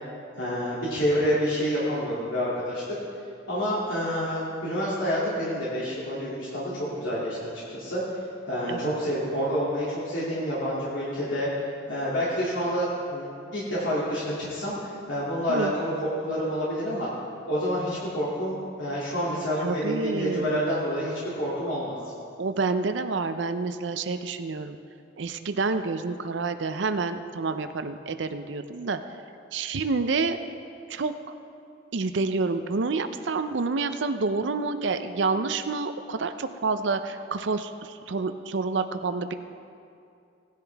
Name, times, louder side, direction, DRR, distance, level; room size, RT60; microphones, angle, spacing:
voice 1, 0.4-2.8 3.5-7.4 7.7-8.0 8.5-13.3 13.5-17.1 17.5-22.0, equal, 80° left, -8 dB, 2.5 m, -28 dB
voice 2, 19.6-20.7 22.4-24.8 25.2-29.0 29.5-30.4 30.9-31.1 31.9-39.3, right 4 dB, 70° right, 9 dB, 0.5 m, -28 dB
18.0 x 10.5 x 3.4 m, 2.6 s
head